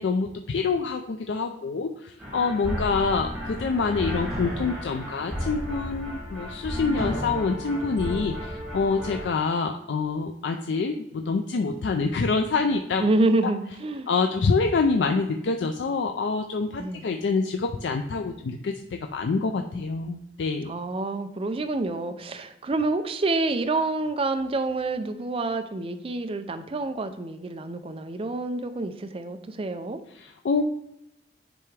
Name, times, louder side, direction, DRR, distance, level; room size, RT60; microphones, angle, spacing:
voice 1, 0.0-13.0 14.1-20.7 30.1-30.6, left 4 dB, 85° left, 5 dB, 0.4 m, -26 dB
sound 1, 2.2-9.3, equal, 5° right, 2.1 m, -33 dB
voice 2, 13.0-14.1 16.8-17.1 20.7-30.0, right 2 dB, 30° right, 7 dB, 0.4 m, -27 dB
9.8 x 3.4 x 3.2 m, 0.82 s
head